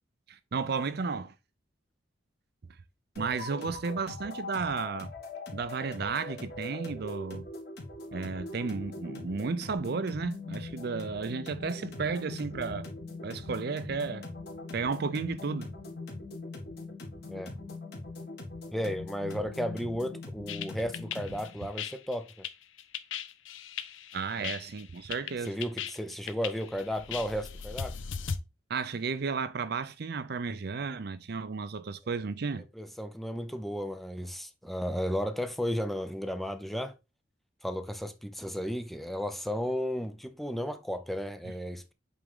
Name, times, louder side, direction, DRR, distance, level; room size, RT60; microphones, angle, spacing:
voice 1, 0.3-1.3 3.2-5.1 5.5-7.5 8.1-12.9 13.2-14.3 14.7-15.7 24.1-25.6 28.7-32.7, right 4 dB, 55° right, 0.5 m, -33 dB
sound 1, 3.2-21.6, left 2 dB, 55° left, 1.9 m, -42 dB
voice 2, 18.7-22.5 24.4-24.5 25.4-28.0 32.8-36.9 37.6-41.9, equal, ahead, 0.5 m, -34 dB
sound 2, 20.5-28.4, left 7 dB, 75° left, 0.6 m, -38 dB
8.0 x 3.6 x 3.6 m
head